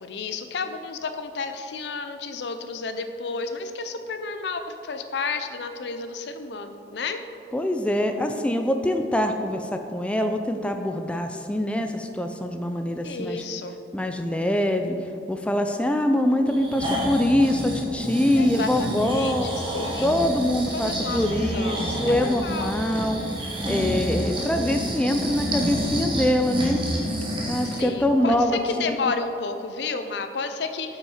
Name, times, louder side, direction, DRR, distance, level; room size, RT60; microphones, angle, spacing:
voice 1, 0.0-7.2 13.0-13.7 18.4-20.2 20.7-22.8 27.6-31.0, left 4 dB, 75° left, 8 dB, 0.5 m, -32 dB
voice 2, 7.5-13.4 13.9-15.0 15.3-19.5 20.0-23.2 23.7-26.9 27.5-29.0, left 1 dB, 5° left, 5 dB, 0.3 m, -24 dB
Breathing, 16.5-27.9 28.3-28.4, equal, 30° right, 1.3 m, -29 dB
7.1 x 5.8 x 4.9 m, 2.6 s
head